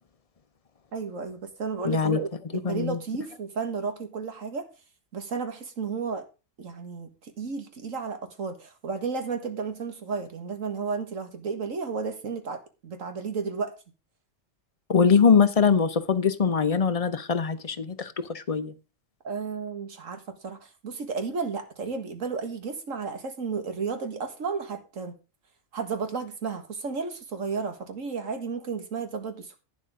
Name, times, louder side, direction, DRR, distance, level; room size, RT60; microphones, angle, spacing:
voice 1, 0.9-4.7 5.1-6.3 6.6-13.7 19.2-25.1 25.7-29.6, right 5 dB, 90° right, 2.0 m, -33 dB
voice 2, 1.8-2.2 2.5-3.0 14.9-18.7, left 6 dB, 35° left, 0.7 m, -22 dB
11.0 x 9.6 x 3.7 m
omnidirectional pair, 1.3 m